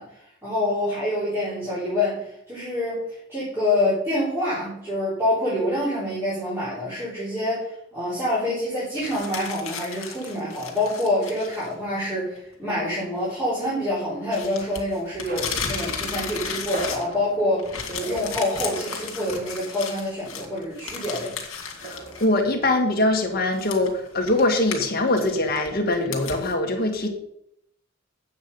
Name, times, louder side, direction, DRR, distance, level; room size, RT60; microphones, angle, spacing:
voice 1, 0.0-21.3, left 1 dB, 10° right, -11 dB, 3.8 m, -26 dB
sound 1, 9.0-11.7 12.0-12.1 14.3-17.3 17.6-22.3 22.7-22.8 23.5-26.5, left 6 dB, 80° left, 2.1 m, -34 dB
sound 2, 15.2-19.5 19.8-20.0 20.3-22.2, right 2 dB, 45° right, 2.4 m, -39 dB
voice 2, 21.8-27.1, left 2 dB, 45° left, 2 dB, 1.8 m, -23 dB
8.8 x 7.3 x 5.4 m, 0.74 s
head